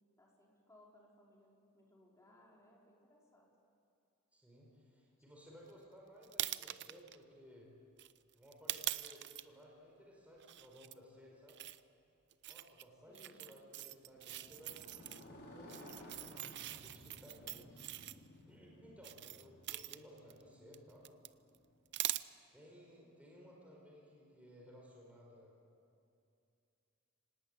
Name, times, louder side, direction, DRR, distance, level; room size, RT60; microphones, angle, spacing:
voice 1, 0.2-3.5 13.0-13.4, left 1 dB, 15° left, -3 dB, 4.8 m, -65 dB
voice 2, 4.3-7.7 8.3-11.6 12.4-14.8 15.4-17.8 18.5-21.1 22.5-25.6, equal, 5° right, -3 dB, 4.7 m, -58 dB
sound 1, 6.2-7.2 8.0-9.4 10.4-10.9 11.5-11.8 12.3-12.8 13.2-15.2 15.7-18.2 19.0-20.4 20.7-21.3 21.5-21.6 21.9-22.2, right 14 dB, 55° right, 0.6 m, -43 dB
Motorcycle, 14.0-22.1, left 1 dB, 50° left, 5.1 m, -57 dB
25.0 x 18.5 x 9.0 m, 2.5 s
head